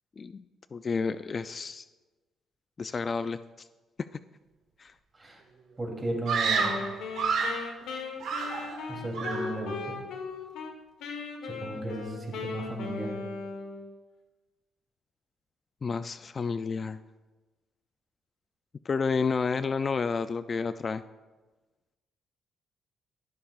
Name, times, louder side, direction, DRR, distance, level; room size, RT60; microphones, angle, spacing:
voice 1, 0.7-1.8 2.8-3.7 4.8-4.9 15.8-17.0 18.9-21.0, left 5 dB, 40° left, 12 dB, 0.3 m, -30 dB
voice 2, 5.8-6.8 8.9-10.0 11.4-13.2, right 1 dB, 25° right, 0 dB, 3.1 m, -35 dB
Screaming, 6.3-7.7 8.2-8.9 9.1-9.6, right 5 dB, 75° right, 1.7 m, -29 dB
Wind instrument woodwind instrument, 6.5-10.7 11.0-13.9, left 4 dB, 85° left, 1.4 m, -38 dB
21.0 x 7.1 x 2.4 m, 1.2 s
cardioid pair, 90°, 0 cm